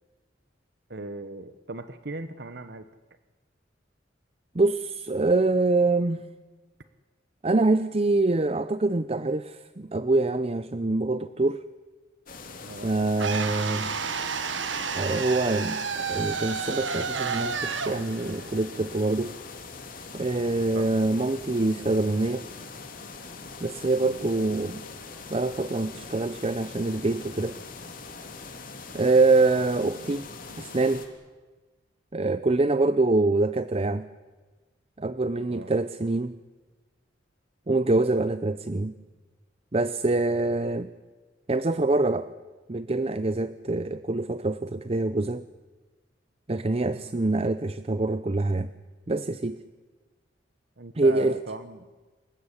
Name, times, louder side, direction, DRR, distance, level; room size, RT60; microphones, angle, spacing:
voice 1, 0.9-2.9 12.7-12.9 20.7-21.0 24.0-24.3 35.5-35.7 47.0-47.1 50.8-51.8, right 2 dB, 60° right, 11 dB, 1.1 m, -38 dB
voice 2, 4.5-6.2 7.4-11.6 12.8-13.9 14.9-19.3 20.1-22.5 23.6-24.8 25.3-27.6 28.9-30.3 30.6-31.1 32.1-34.1 35.0-36.4 37.7-38.9 39.7-40.9 41.5-42.3 42.7-45.5 46.5-48.7 49.1-49.6 50.9-51.3, right 2 dB, 30° right, 13 dB, 0.7 m, -25 dB
sound 1, 12.3-31.1, left 4 dB, 50° left, 3.2 m, -42 dB
sound 2, 13.2-19.3, right 5 dB, 85° right, 1.6 m, -31 dB
27.5 x 15.5 x 9.9 m, 1.3 s
head